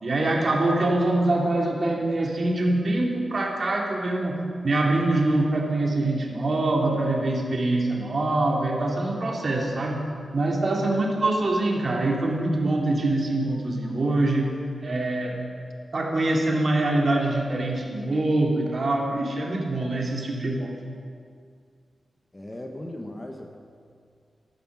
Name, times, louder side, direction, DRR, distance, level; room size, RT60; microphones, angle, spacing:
voice 1, 0.0-4.4 4.6-10.0 10.3-14.5 14.8-15.4 15.9-20.7, right 2 dB, 45° right, 0 dB, 2.4 m, -24 dB
voice 2, 22.3-23.6, left 1 dB, 20° left, 3 dB, 1.1 m, -37 dB
13.0 x 12.5 x 7.1 m, 2.2 s
wide cardioid pair, 155°, 0 cm